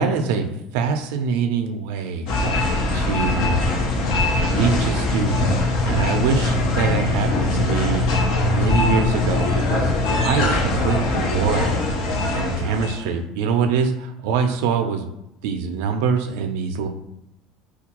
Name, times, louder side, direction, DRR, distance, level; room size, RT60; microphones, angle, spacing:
voice 1, 0.0-2.3 2.9-3.5 4.5-5.5 5.8-8.1 8.6-9.9 10.2-11.7 12.3-15.0 15.4-16.9, right 5 dB, 80° right, 4 dB, 0.4 m, -24 dB
sound 1, 2.3-13.1, left 2 dB, 60° left, 0.6 m, -21 dB
4.4 x 2.2 x 2.9 m, 0.83 s
cardioid pair, 165°, 0 cm